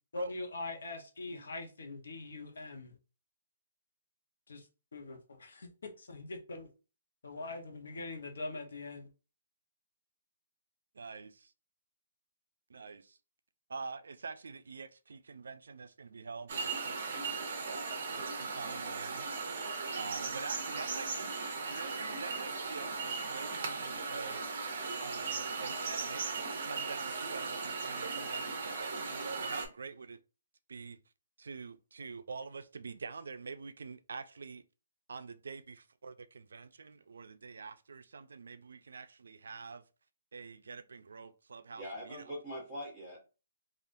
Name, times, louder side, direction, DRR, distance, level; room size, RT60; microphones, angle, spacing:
voice 1, 0.1-2.9 4.5-4.6 4.9-5.2 6.1-6.7 7.2-9.1, left 3 dB, 70° left, 0.8 m, -42 dB
voice 2, 10.9-11.5 12.7-13.2 13.7-19.3 19.9-21.3 21.7-24.6 25.0-30.2 30.7-31.0 31.4-34.6 35.1-39.8 40.3-42.2, right 5 dB, 75° right, 0.4 m, -46 dB
sound 1, 16.5-29.7, right 4 dB, 40° right, 0.7 m, -37 dB
voice 3, 41.7-43.3, equal, 5° left, 1.0 m, -43 dB
3.5 x 2.4 x 2.5 m
hypercardioid pair, 175°, 0 cm